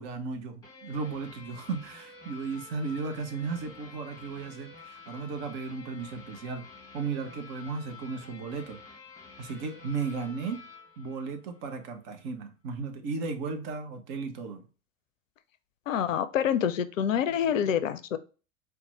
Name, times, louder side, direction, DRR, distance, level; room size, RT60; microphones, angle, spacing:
voice 1, 0.0-6.7 6.9-8.8 9.4-10.6 11.0-14.7, right 4 dB, 40° right, 0.8 m, -35 dB
sound 1, 0.6-11.9, left 4 dB, 10° left, 1.5 m, -50 dB
voice 2, 15.9-18.2, left 9 dB, 70° left, 0.5 m, -27 dB
4.2 x 2.2 x 4.0 m
figure-of-eight pair, 85°, 41 cm